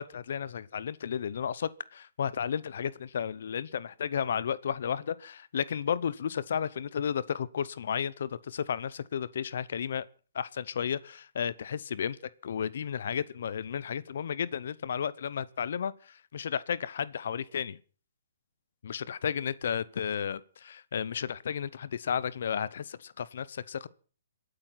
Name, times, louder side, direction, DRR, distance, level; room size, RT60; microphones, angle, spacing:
voice 1, 0.0-10.0 10.3-17.8 18.8-23.9, left 8 dB, 55° left, 0.7 m, -33 dB
26.5 x 8.9 x 5.9 m
hypercardioid pair, 170°, 0 cm